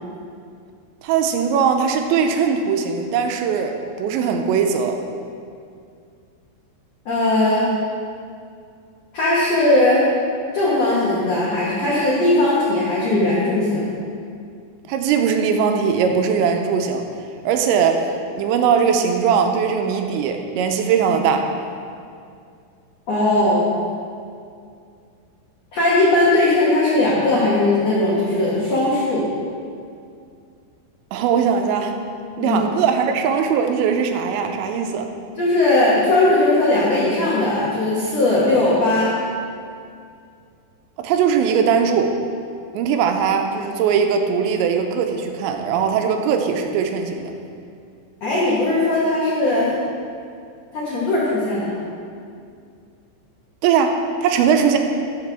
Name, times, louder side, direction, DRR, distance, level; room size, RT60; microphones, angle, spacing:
voice 1, 1.0-5.0 14.9-17.1 17.5-18.0 18.4-21.5 31.1-32.0 32.4-35.1 41.0-42.2 42.7-47.3 53.6-54.8, right 6 dB, 85° right, 5 dB, 2.9 m, -20 dB
voice 2, 7.0-7.7 9.1-10.1 10.5-13.9 23.1-23.7 25.7-29.3 32.4-32.6 35.3-39.1 48.2-49.7 50.7-51.8, left 2 dB, 85° left, -8 dB, 1.4 m, -18 dB
13.0 x 6.6 x 3.4 m, 2.3 s
omnidirectional pair, 5.3 m